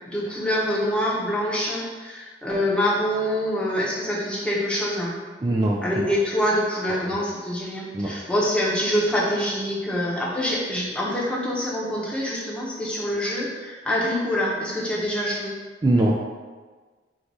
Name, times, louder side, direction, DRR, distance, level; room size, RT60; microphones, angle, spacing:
voice 1, 0.1-5.1 5.8-15.5, equal, 5° left, -6 dB, 0.8 m, -25 dB
voice 2, 5.4-6.1 6.9-7.0 7.9-8.1 15.8-16.2, right 1 dB, 25° right, -3 dB, 0.3 m, -22 dB
3.9 x 2.4 x 4.7 m, 1.4 s
head